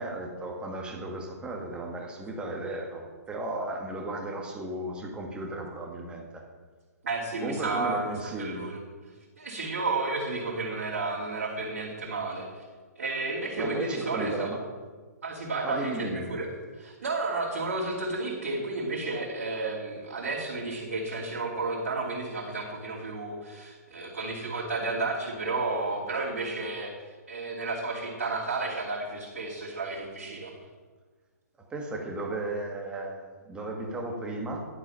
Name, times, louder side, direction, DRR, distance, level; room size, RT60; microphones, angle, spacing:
voice 1, 0.0-6.4 7.4-8.7 13.6-14.6 15.6-16.3 31.6-34.7, right 2 dB, 10° right, 1 dB, 1.6 m, -35 dB
voice 2, 7.0-8.8 9.4-12.6 12.9-14.5 15.2-16.5 16.7-26.9 27.3-30.5, right 3 dB, 50° right, -9 dB, 3.3 m, -32 dB
11.0 x 8.1 x 5.7 m, 1.4 s
figure-of-eight pair, 125°, 9 cm